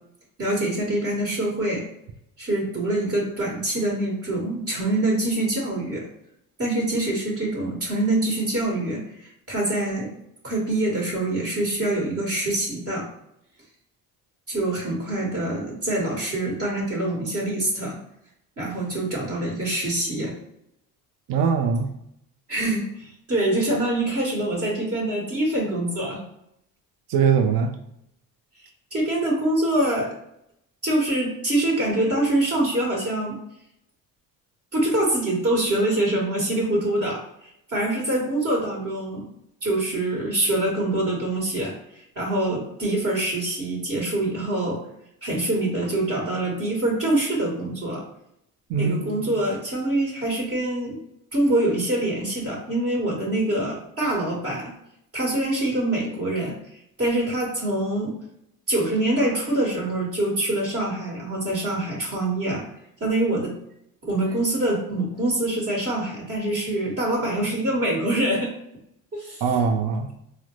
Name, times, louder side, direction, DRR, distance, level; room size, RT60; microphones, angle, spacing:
voice 1, 0.4-1.9 2.4-6.0 6.6-10.1 10.4-13.1 14.5-18.0 18.6-20.3 22.5-26.2 28.9-30.1 30.8-33.4 34.7-37.2 37.7-39.3 39.6-41.7 42.1-44.8 45.2-48.0 48.8-51.0 51.3-54.7 55.1-56.6 57.0-58.1 58.7-62.6 63.0-63.6 64.0-68.5 69.1-69.4, right 1 dB, 40° right, -2 dB, 1.3 m, -25 dB
voice 2, 21.3-21.9 27.1-27.7 48.7-49.0 69.4-70.1, right 6 dB, 65° right, 6 dB, 0.6 m, -21 dB
3.7 x 2.1 x 3.0 m, 0.77 s
cardioid pair, 90°, 38 cm